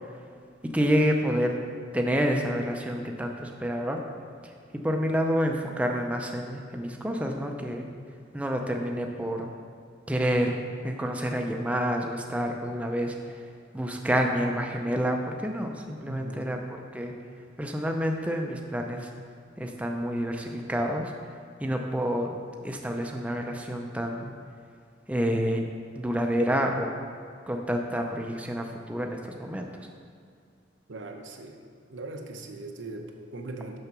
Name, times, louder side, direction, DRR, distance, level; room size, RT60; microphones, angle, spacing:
voice 1, 0.7-1.5 1.9-4.0 4.4-4.5 4.8-7.9 8.3-9.5 10.1-13.2 13.7-16.6 16.9-17.1 17.6-19.1 19.6-21.1 21.6-22.4 22.6-24.3 25.1-25.6 26.0-26.9 27.5-29.9, equal, 5° right, 2 dB, 0.5 m, -28 dB
voice 2, 16.1-16.4 30.9-31.6 31.9-33.8, right 2 dB, 85° right, 3 dB, 0.8 m, -39 dB
6.6 x 5.7 x 5.9 m, 2.3 s
head